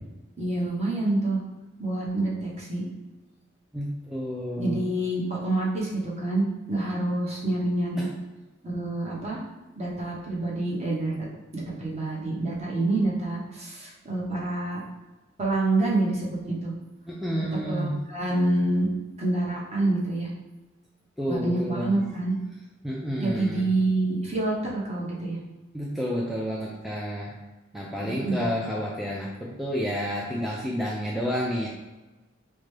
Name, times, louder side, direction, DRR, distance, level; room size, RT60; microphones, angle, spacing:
voice 1, 0.4-1.4 1.8-2.8 4.6-8.1 8.6-9.4 9.8-11.3 11.5-14.8 15.4-16.7 17.7-18.9 19.2-20.3 21.3-22.3 23.2-25.4 28.0-28.4, right 2 dB, 35° right, -5 dB, 1.0 m, -27 dB
voice 2, 3.7-4.8 8.0-8.1 17.1-17.9 21.2-22.0 22.8-23.7 25.7-27.3 27.7-31.7, equal, ahead, -4 dB, 0.4 m, -30 dB
4.8 x 2.2 x 3.2 m, 1.1 s
head